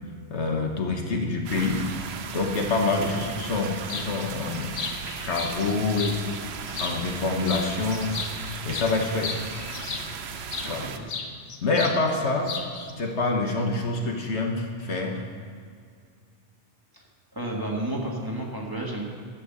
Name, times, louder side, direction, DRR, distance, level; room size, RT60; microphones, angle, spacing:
voice 1, 0.3-1.8 2.3-4.7 5.2-6.4 6.8-9.4 10.6-10.8 11.6-12.5 13.0-15.2, left 3 dB, 65° left, 2 dB, 1.5 m, -26 dB
sound 1, 1.5-11.0, right 6 dB, 65° right, 0.9 m, -37 dB
sound 2, 3.9-4.1 4.5-6.2 6.7-7.2 7.4-10.7 11.1-12.0 12.2-12.9, left 5 dB, 85° left, 1.3 m, -34 dB
voice 2, 10.7-11.1 16.9-17.0 17.3-19.0, right 1 dB, 20° right, -3 dB, 1.7 m, -31 dB
11.0 x 7.6 x 6.8 m, 2.1 s
omnidirectional pair, 1.2 m